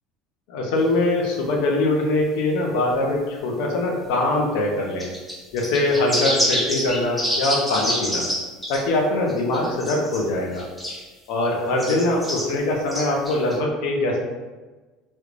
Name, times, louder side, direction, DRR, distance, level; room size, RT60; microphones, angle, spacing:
voice 1, 0.5-5.1 5.5-8.3 8.7-10.7 11.3-14.2, left 2 dB, 70° left, 0 dB, 0.7 m, -22 dB
sound 1, 5.0-8.4 8.6-8.8 9.3-10.2 10.5-11.0 11.8-12.4 12.9-13.6, equal, ahead, 0.7 m, -26 dB
3.1 x 3.1 x 2.5 m, 1.3 s
cardioid pair, 175°, 0 cm